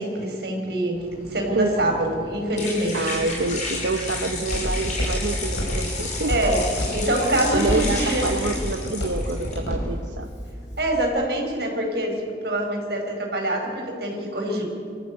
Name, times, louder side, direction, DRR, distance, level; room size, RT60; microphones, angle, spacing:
voice 1, 0.0-3.1 6.3-6.6 6.9-8.2 10.8-12.1 12.4-14.7, right 1 dB, 65° right, 2 dB, 4.8 m, -25 dB
sound 1, 0.9-9.5, left 3 dB, 40° left, 5.4 m, -33 dB
voice 2, 2.9-6.3 7.5-10.3, right 3 dB, 90° right, 5 dB, 1.0 m, -27 dB
Walk footsteps, 3.1-11.1, equal, 85° left, 6.0 m, -30 dB
26.0 x 14.0 x 8.4 m, 2.2 s
head